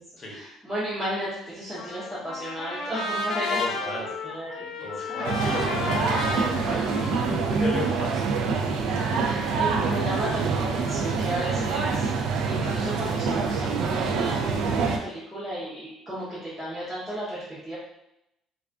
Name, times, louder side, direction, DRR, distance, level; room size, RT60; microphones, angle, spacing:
voice 1, 0.3-5.3 9.2-12.1 12.5-17.7, equal, 10° right, -11 dB, 0.7 m, -34 dB
Trumpet, 1.8-8.0, left 3 dB, 75° left, 0.3 m, -32 dB
voice 2, 3.5-4.0 4.8-8.2 9.4-9.6, left 2 dB, 35° left, -3 dB, 0.7 m, -34 dB
sound 1, 5.2-15.0, right 5 dB, 80° right, 0.3 m, -26 dB
2.3 x 2.2 x 2.4 m, 0.84 s
cardioid pair, 140°, 0 cm